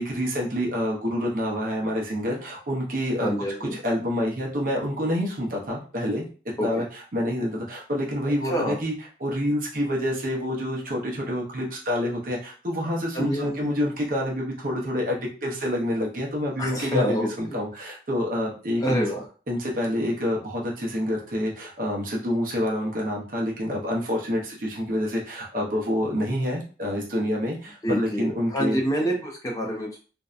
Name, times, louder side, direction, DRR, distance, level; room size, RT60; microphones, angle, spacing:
voice 1, 0.0-3.3 3.6-6.2 6.6-8.9 9.2-19.0 19.5-28.8, left 1 dB, 45° right, -1 dB, 0.6 m, -27 dB
voice 2, 3.2-3.7 6.6-6.8 8.5-8.8 13.1-13.7 16.6-17.6 18.8-19.2 27.8-30.0, right 1 dB, 20° left, -1 dB, 0.4 m, -27 dB
2.6 x 2.1 x 2.4 m, 0.37 s
head